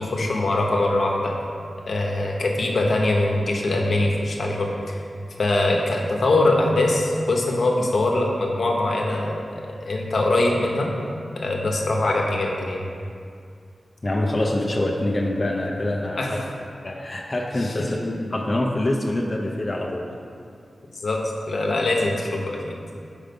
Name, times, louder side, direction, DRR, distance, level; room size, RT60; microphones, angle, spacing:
voice 1, 0.0-1.3 1.9-5.0 5.4-10.9 11.4-12.8 16.2-16.3 17.6-17.7 20.9-21.2 21.5-22.8, left 2 dB, 70° left, 0 dB, 1.0 m, -22 dB
voice 2, 14.0-16.4 16.8-20.1, left 1 dB, 30° left, -2 dB, 0.6 m, -25 dB
6.5 x 5.1 x 5.2 m, 2.3 s
wide cardioid pair, 95°, 0 cm